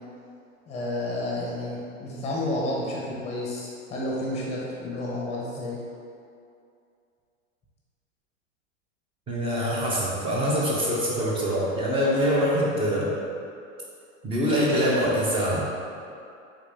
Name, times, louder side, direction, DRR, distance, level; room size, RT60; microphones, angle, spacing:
voice 1, 0.7-5.8, left 1 dB, 15° left, -5 dB, 0.8 m, -31 dB
voice 2, 9.3-13.1 14.2-15.7, equal, 15° right, -5 dB, 0.5 m, -24 dB
3.7 x 2.4 x 3.4 m, 2.5 s
hypercardioid pair, 125°, 40 cm